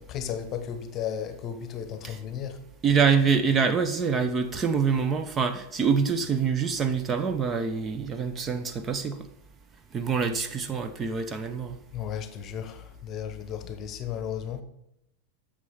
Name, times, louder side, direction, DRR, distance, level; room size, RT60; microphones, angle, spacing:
voice 1, 0.0-2.6 11.9-14.6, left 8 dB, 30° left, 1.1 m, -34 dB
voice 2, 2.8-9.2 9.9-11.8, right 6 dB, 20° right, 0.8 m, -25 dB
9.5 x 6.6 x 5.5 m
figure-of-eight pair, 90°, 0 cm